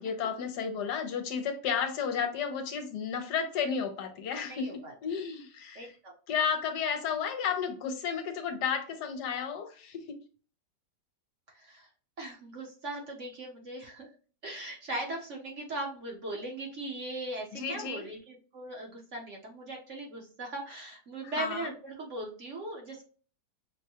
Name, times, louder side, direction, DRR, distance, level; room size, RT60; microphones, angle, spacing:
voice 1, 0.0-5.9 6.3-10.2 17.5-18.1 21.2-21.7, left 6 dB, 70° left, 6 dB, 1.2 m, -33 dB
voice 2, 4.4-4.9 5.7-6.1 11.5-11.9 12.2-14.1 14.4-23.0, right 2 dB, 50° right, -1 dB, 1.1 m, -39 dB
6.0 x 2.2 x 2.8 m, 0.39 s
omnidirectional pair, 1.9 m